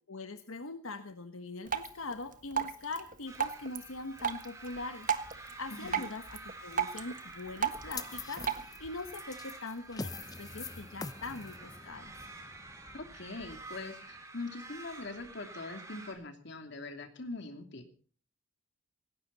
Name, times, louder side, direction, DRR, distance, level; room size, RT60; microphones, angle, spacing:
voice 1, 0.1-10.1 10.4-12.1, left 3 dB, 80° left, 8 dB, 1.2 m, -42 dB
Drip, 1.6-8.6, right 7 dB, 40° right, 1.5 m, -37 dB
sound 1, 3.3-16.1, right 2 dB, 15° right, 4.2 m, -49 dB
voice 2, 5.7-6.0 12.9-17.9, left 3 dB, 55° left, 6 dB, 2.9 m, -42 dB
sound 2, 7.9-14.2, left 4 dB, 20° left, 0.7 m, -45 dB
18.5 x 17.0 x 4.1 m, 0.42 s
head